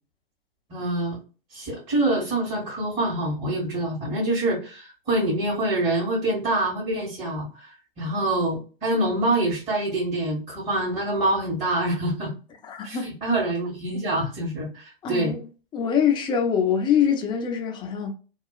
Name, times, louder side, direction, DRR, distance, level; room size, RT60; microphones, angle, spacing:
voice 1, 0.7-1.2 1.5-7.7 8.0-12.3 12.8-15.3, right 1 dB, 25° right, 1.4 m, -25 dB
voice 2, 12.6-13.1 15.0-15.4 15.7-18.1, left 8 dB, 15° left, 0.5 m, -24 dB
2.8 x 2.3 x 2.3 m
figure-of-eight pair, 105°, 29 cm